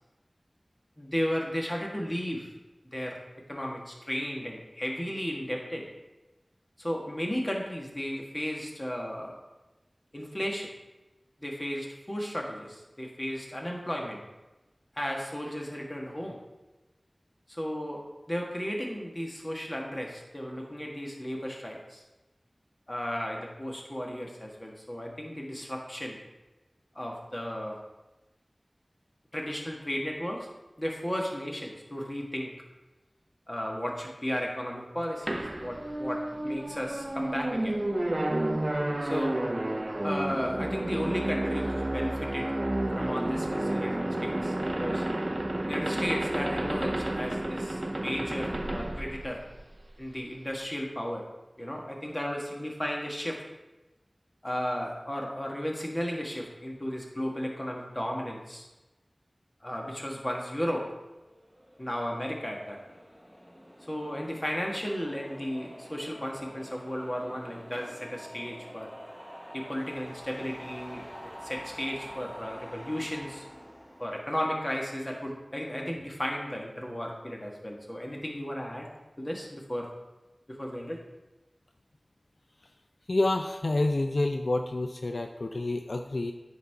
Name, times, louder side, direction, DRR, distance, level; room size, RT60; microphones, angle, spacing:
voice 1, 1.0-2.5 2.9-3.2 3.5-5.9 6.8-9.4 10.1-10.7 11.4-14.2 14.9-16.4 17.5-18.0 18.3-22.0 22.9-26.2 26.9-27.8 29.3-30.5 30.8-32.5 33.5-37.8 39.0-39.4 40.0-42.5 42.9-44.5 44.8-45.0 45.7-49.4 50.0-51.2 51.6-53.4 54.4-58.7 59.6-60.9 61.8-62.8 63.8-68.9 69.5-71.1 71.4-73.4 74.0-78.9 79.2-79.9 80.5-81.0, equal, 30° left, 0 dB, 1.5 m, -34 dB
sound 1, 35.3-50.0, right 1 dB, 40° right, 0.5 m, -31 dB
sound 2, 61.1-75.4, equal, ahead, 0.9 m, -47 dB
voice 2, 83.1-86.3, left 2 dB, 80° left, 5 dB, 0.4 m, -28 dB
9.4 x 4.1 x 4.6 m, 1.1 s
wide cardioid pair, 40°, 0 cm